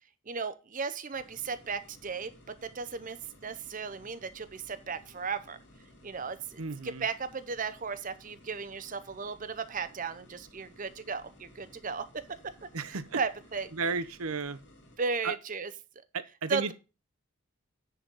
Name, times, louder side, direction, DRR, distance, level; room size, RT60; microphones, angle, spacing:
voice 1, 0.3-5.6 6.0-12.2 12.9-13.7 15.0-15.7 16.5-16.7, right 5 dB, 35° right, 0.6 m, -35 dB
sound 1, 1.1-15.0, left 1 dB, 55° left, 2.6 m, -57 dB
voice 2, 6.6-7.1 12.7-13.2 13.7-14.6 15.2-15.3 16.1-16.7, right 4 dB, 80° right, 0.8 m, -33 dB
10.0 x 4.0 x 6.1 m
head